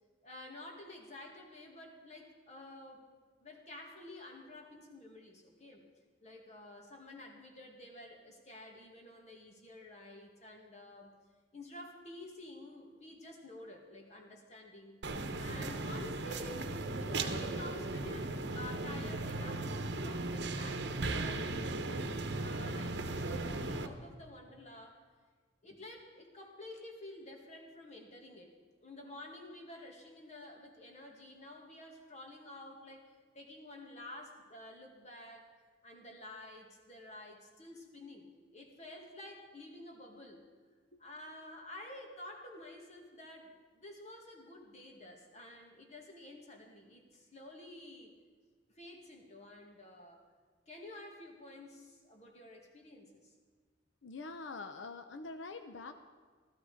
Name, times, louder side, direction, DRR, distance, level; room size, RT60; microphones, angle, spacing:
voice 1, 0.2-3.1 3.4-5.8 6.2-11.1 11.5-15.0 15.4-16.6 17.0-22.1 22.4-25.0 25.6-28.5 28.8-33.1 33.3-35.5 35.8-40.4 41.0-48.1 48.7-50.2 50.7-53.3, left 1 dB, 40° left, 2 dB, 2.1 m, -50 dB
sound 1, 15.0-23.9, right 2 dB, 65° right, 1.0 m, -37 dB
voice 2, 54.0-56.0, left 3 dB, 85° left, 8 dB, 0.7 m, -45 dB
15.5 x 13.5 x 5.0 m, 1.5 s
head